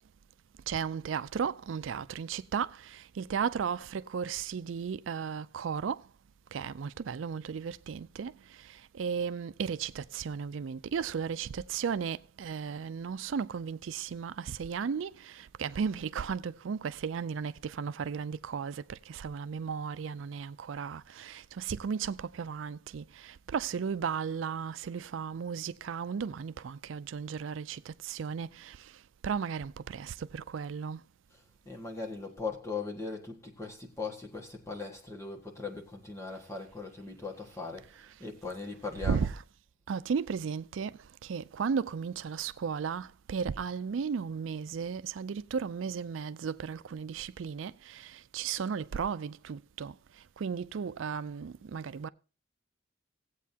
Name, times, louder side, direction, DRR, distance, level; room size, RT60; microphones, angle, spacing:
voice 1, 0.7-6.0 6.5-28.9 29.2-31.0 38.0-38.1 39.0-39.4 39.9-50.0 50.4-52.1, right 6 dB, 85° right, 0.4 m, -35 dB
voice 2, 31.6-37.9 38.2-39.3, left 4 dB, 15° left, 1.6 m, -39 dB
17.0 x 8.3 x 2.8 m
head